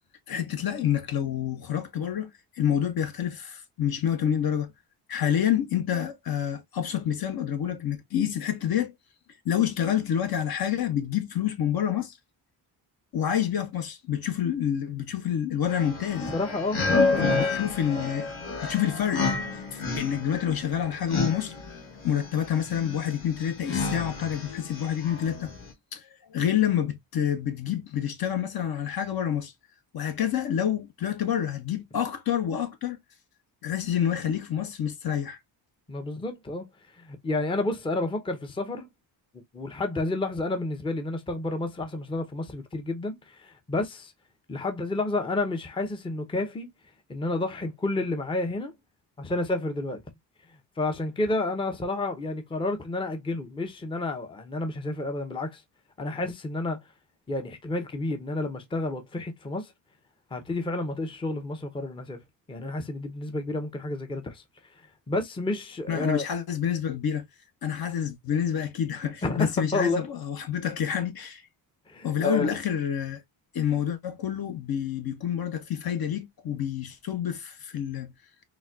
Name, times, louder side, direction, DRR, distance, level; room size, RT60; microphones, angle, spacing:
voice 1, 0.3-2.3 2.6-4.7 5.1-8.9 9.4-12.2 13.1-16.3 17.2-18.3 18.6-21.5 22.0-25.5 25.9-29.5 29.9-33.0 33.6-35.4 65.9-67.3 67.6-71.4 72.0-73.2 73.5-78.1, left 9 dB, 50° left, 0.8 m, -28 dB
sound 1, 15.7-25.7, left 3 dB, 80° left, 1.4 m, -30 dB
voice 2, 16.3-16.8 17.1-17.5 35.9-36.7 36.9-38.9 39.5-44.1 44.5-46.7 47.1-48.7 49.2-50.0 50.8-55.6 56.0-56.8 57.3-59.7 60.3-62.2 62.5-64.4 65.1-66.2 69.2-70.0 71.9-72.6, left 2 dB, 10° left, 0.6 m, -30 dB
4.0 x 2.2 x 2.2 m
cardioid pair, 95°, 47 cm